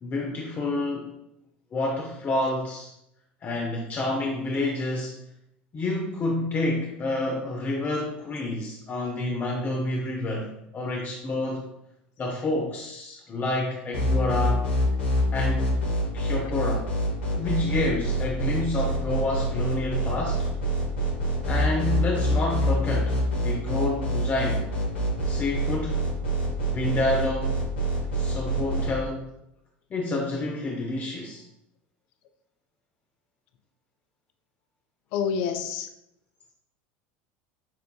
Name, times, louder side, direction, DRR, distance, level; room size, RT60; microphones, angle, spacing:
voice 1, 0.0-1.1 1.7-2.9 3.4-5.2 5.7-11.7 12.2-14.7 15.3-15.8 16.1-16.9 17.3-20.5 21.4-23.1 23.4-24.6 25.3-26.1 26.7-27.6 28.1-29.3 29.9-31.4, left 2 dB, 30° left, 0 dB, 0.7 m, -28 dB
sound 1, 13.9-28.9, right 1 dB, 85° left, 1.1 m, -26 dB
voice 2, 35.1-35.9, left 7 dB, 65° left, 8 dB, 0.3 m, -28 dB
7.1 x 2.5 x 2.3 m, 0.82 s
hypercardioid pair, 85°, 6 cm